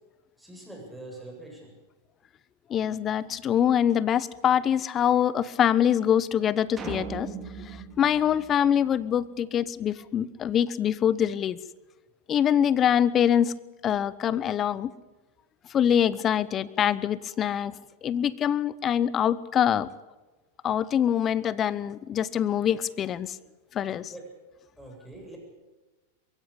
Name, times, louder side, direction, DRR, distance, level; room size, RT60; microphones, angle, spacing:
voice 1, 0.4-1.7 24.0-24.3 24.8-25.4, right 2 dB, ahead, 0 dB, 7.9 m, -43 dB
voice 2, 2.7-7.3 7.6-11.6 12.3-13.5 13.8-14.9 15.7-19.9 20.6-23.4 23.7-24.1, left 9 dB, 30° left, 19 dB, 0.9 m, -24 dB
sound 1, 6.8-9.2, right 5 dB, 20° right, 3.5 m, -39 dB
22.0 x 16.0 x 8.7 m, 1.2 s
hypercardioid pair, 110°, 0 cm